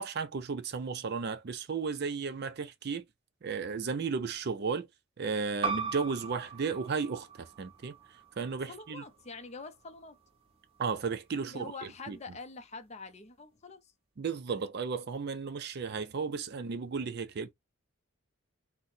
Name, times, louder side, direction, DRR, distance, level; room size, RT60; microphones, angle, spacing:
voice 1, 0.0-3.1 3.4-4.9 5.2-8.0 8.4-9.0 10.8-11.7 12.1-12.2 14.2-17.5, right 5 dB, 45° right, 0.4 m, -34 dB
sound 1, 5.6-10.8, right 5 dB, 25° right, 1.0 m, -40 dB
voice 2, 8.7-10.2 11.4-13.9, left 3 dB, 30° left, 0.5 m, -45 dB
4.0 x 2.1 x 2.7 m
head